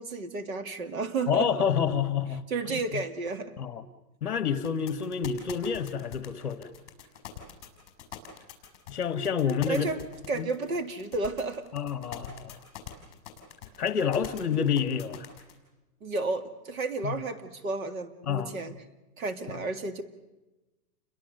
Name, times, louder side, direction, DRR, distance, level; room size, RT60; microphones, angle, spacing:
voice 1, 0.0-1.5 2.5-3.5 9.7-10.0 10.3-11.7 16.0-18.8 19.2-20.0, right 3 dB, 60° right, 8 dB, 2.3 m, -32 dB
voice 2, 1.3-2.5 2.7-2.8 3.6-3.8 4.2-6.7 8.9-9.9 10.3-10.5 11.7-12.6 13.8-15.3 17.0-17.2 18.3-18.7 19.5-19.6, left 7 dB, 45° left, 11 dB, 1.4 m, -28 dB
sound 1, 4.6-15.5, left 11 dB, 20° left, 5.1 m, -43 dB
29.5 x 23.0 x 6.7 m, 1.1 s
hypercardioid pair, 180°, 47 cm